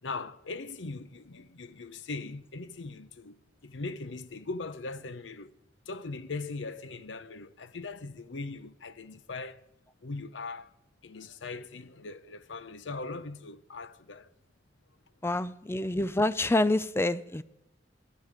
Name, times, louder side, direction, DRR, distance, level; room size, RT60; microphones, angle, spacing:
voice 1, 0.0-5.5 5.9-9.6 10.0-10.7 11.0-14.3, left 3 dB, 85° left, 0.8 m, -40 dB
voice 2, 15.2-17.4, left 2 dB, 15° left, 0.4 m, -27 dB
10.5 x 9.6 x 9.7 m
head